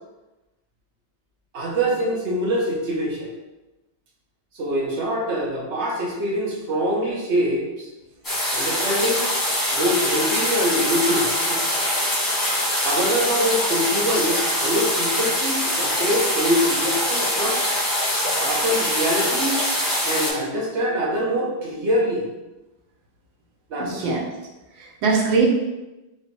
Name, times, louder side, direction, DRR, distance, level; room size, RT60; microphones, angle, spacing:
voice 1, 1.5-3.4 4.5-7.9 8.5-9.3 9.7-11.6 12.8-17.6 18.4-19.6 20.0-22.2 23.7-24.0, equal, 50° right, -3 dB, 0.8 m, -24 dB
sound 1, 8.2-20.3, left 1 dB, 10° left, 1.1 m, -23 dB
voice 2, 23.8-24.2 24.8-25.5, right 4 dB, 70° right, -2 dB, 1.5 m, -21 dB
4.1 x 2.9 x 3.3 m, 1.0 s
omnidirectional pair, 2.2 m